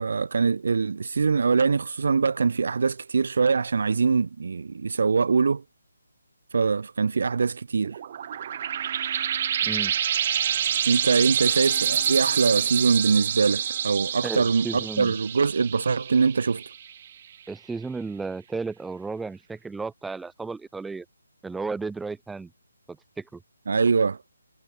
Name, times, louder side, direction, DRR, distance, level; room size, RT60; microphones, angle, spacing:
voice 1, 0.0-5.6 6.5-8.0 10.9-14.7 15.0-16.6 23.7-24.2, right 5 dB, 55° right, 1.3 m, -23 dB
sound 1, 7.9-17.0, right 9 dB, 30° right, 0.4 m, -27 dB
voice 2, 9.6-9.9 14.2-15.1 17.5-21.1 21.4-22.5 22.9-23.4, right 4 dB, 5° right, 2.2 m, -34 dB
hypercardioid pair, 175°, 0 cm